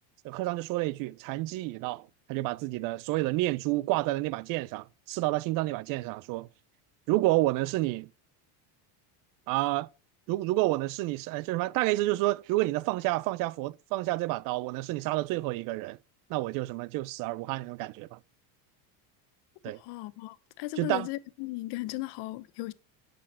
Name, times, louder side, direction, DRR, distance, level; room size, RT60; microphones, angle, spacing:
voice 1, 0.2-6.5 7.1-8.1 9.5-9.9 10.3-16.0 16.3-18.2 19.6-19.8 20.8-21.1, right 18 dB, 45° right, 0.5 m, -29 dB
voice 2, 19.8-22.7, left 18 dB, 60° left, 1.0 m, -36 dB
11.5 x 7.9 x 4.3 m
cardioid pair, 140°, 46 cm